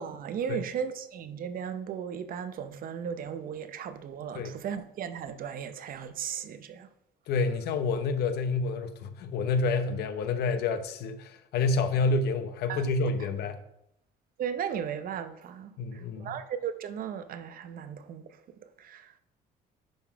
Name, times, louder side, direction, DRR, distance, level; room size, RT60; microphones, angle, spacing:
voice 1, 0.0-6.9 12.7-12.8 14.4-19.1, right 8 dB, 55° right, 0.8 m, -36 dB
voice 2, 7.3-13.6 15.8-16.3, left 3 dB, 75° left, 0.9 m, -28 dB
10.5 x 3.9 x 4.7 m
cardioid pair, 110°, 17 cm